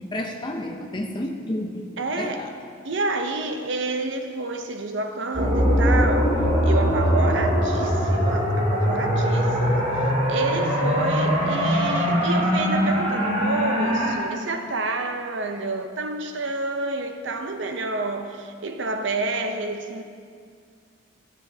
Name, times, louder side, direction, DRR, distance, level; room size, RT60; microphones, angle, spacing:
voice 1, 0.0-1.9 2.2-2.5, left 1 dB, 25° left, 2 dB, 0.5 m, -30 dB
voice 2, 2.0-2.5 2.8-6.4 6.6-20.0, right 2 dB, 65° right, 6 dB, 0.7 m, -29 dB
sound 1, 5.3-14.1, equal, 30° right, 2.3 m, -21 dB
10.0 x 10.0 x 2.7 m, 2.2 s
head